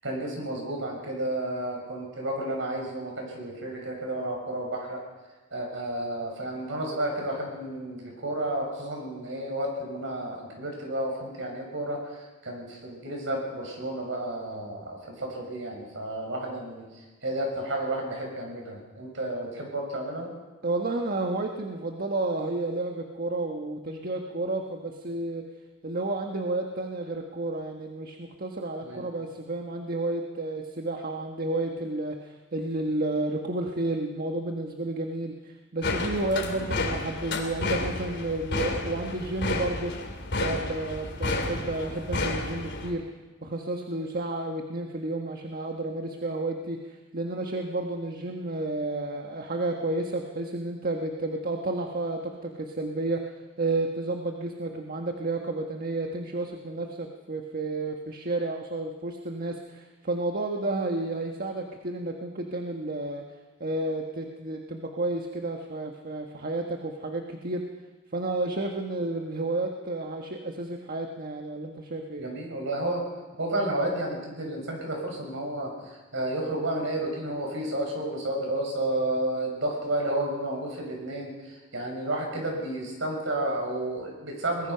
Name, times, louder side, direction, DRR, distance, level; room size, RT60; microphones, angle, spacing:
voice 1, 0.0-5.0 5.5-20.3 28.8-29.1 36.5-36.7 72.2-73.0 73.4-84.7, right 1 dB, 70° right, 1 dB, 6.4 m, -31 dB
voice 2, 20.6-25.4 25.8-40.0 40.4-43.1 43.4-53.3 53.6-63.2 63.6-67.6 68.1-72.3, right 2 dB, 50° right, 3 dB, 1.4 m, -31 dB
sound 1, 35.8-42.9, left 2 dB, 60° left, 2.8 m, -31 dB
22.0 x 20.5 x 5.7 m, 1.2 s
head